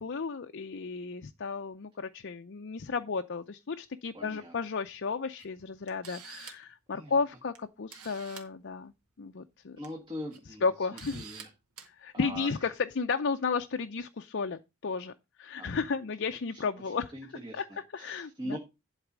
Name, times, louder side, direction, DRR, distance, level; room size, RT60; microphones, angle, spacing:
voice 1, 0.0-8.9 9.2-9.8 10.6-11.2 12.0-15.1 15.4-17.1 17.5-17.6 17.9-18.6, left 5 dB, 50° left, 0.5 m, -33 dB
voice 2, 4.1-4.5 6.9-7.2 9.8-11.5 12.1-12.7 15.6-15.8 16.5-18.6, equal, 20° right, 1.4 m, -42 dB
Camera, 5.4-5.5 5.9-6.7 7.5-7.6 7.9-8.5 9.6-9.9 10.3-10.4 11.0-11.4 11.8-11.9, right 7 dB, 90° right, 2.0 m, -47 dB
11.5 x 4.1 x 6.0 m
head